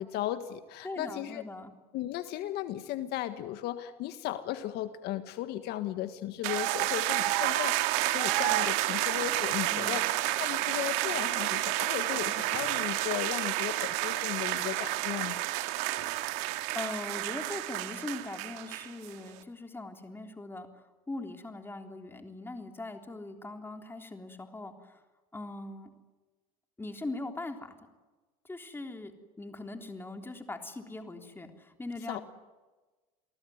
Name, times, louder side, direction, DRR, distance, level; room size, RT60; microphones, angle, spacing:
voice 1, 0.0-1.4 1.9-10.0 10.4-15.4 32.1-32.2, left 13 dB, 60° left, 10 dB, 1.6 m, -36 dB
voice 2, 0.8-1.7 9.7-10.0 16.7-25.0 25.3-25.9 26.8-27.8 28.4-29.1 29.4-32.2, left 2 dB, 10° left, 4 dB, 3.5 m, -41 dB
sound 1, 6.4-19.1, right 16 dB, 75° right, 2.0 m, -30 dB
28.5 x 19.0 x 9.5 m, 1.3 s
supercardioid pair, 105°, 19 cm